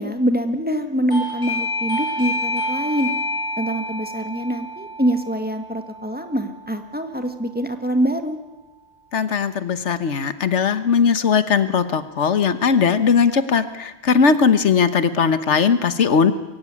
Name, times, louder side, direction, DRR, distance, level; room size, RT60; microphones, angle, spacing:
voice 1, 0.0-3.1 3.6-8.4, right 1 dB, 10° right, 7 dB, 1.6 m, -24 dB
Doorbell, 1.1-7.6, left 1 dB, 20° left, 6.2 m, -29 dB
voice 2, 9.1-16.3, left 6 dB, 90° left, 12 dB, 1.5 m, -18 dB
23.0 x 16.0 x 9.7 m, 1.1 s
omnidirectional pair, 1.2 m